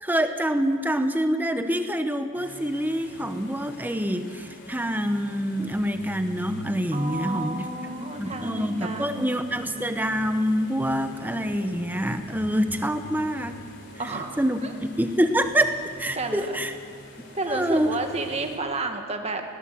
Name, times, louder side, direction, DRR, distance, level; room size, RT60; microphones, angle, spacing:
voice 1, 0.0-7.7 8.0-13.5 14.4-16.7 17.5-17.9, equal, 10° right, 8 dB, 0.9 m, -26 dB
sound 1, 2.3-18.6, right 1 dB, 55° left, 3.3 m, -44 dB
voice 2, 6.9-9.3 14.0-14.7 16.2-16.6 17.3-19.4, right 2 dB, 30° right, 5 dB, 1.7 m, -31 dB
20.0 x 17.0 x 7.8 m, 2.2 s
head